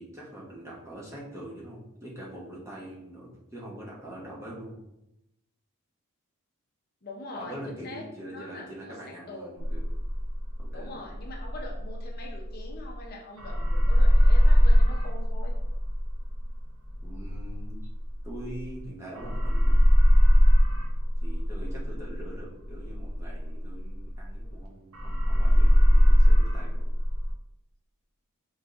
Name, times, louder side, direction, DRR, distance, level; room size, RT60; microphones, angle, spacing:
voice 1, 0.0-4.8 7.3-9.8 10.6-11.1 17.0-17.9 18.2-19.8 21.2-26.8, right 1 dB, 15° right, -5 dB, 1.0 m, -43 dB
voice 2, 7.0-8.9 9.3-9.6 10.7-15.5, left 2 dB, 45° left, 0 dB, 0.7 m, -43 dB
sound 1, 9.6-13.1 13.4-18.8 19.1-24.6 24.9-27.3, equal, 75° right, 1.0 m, -21 dB
5.0 x 3.9 x 2.5 m, 0.85 s
head